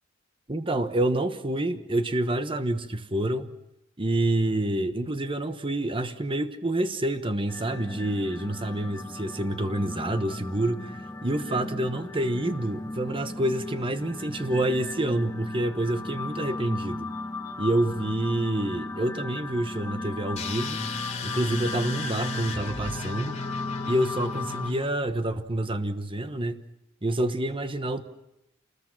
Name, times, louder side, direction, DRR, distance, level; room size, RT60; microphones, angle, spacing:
voice 1, 0.5-3.5 4.0-17.1 17.6-20.8 21.2-23.4 23.8-26.6 27.0-28.1, right 1 dB, 25° right, 1.1 m, -28 dB
sound 1, 7.5-24.7, left 2 dB, 15° left, 1.5 m, -36 dB
sound 2, 20.4-25.1, left 3 dB, 35° left, 3.0 m, -35 dB
27.5 x 20.5 x 6.0 m
head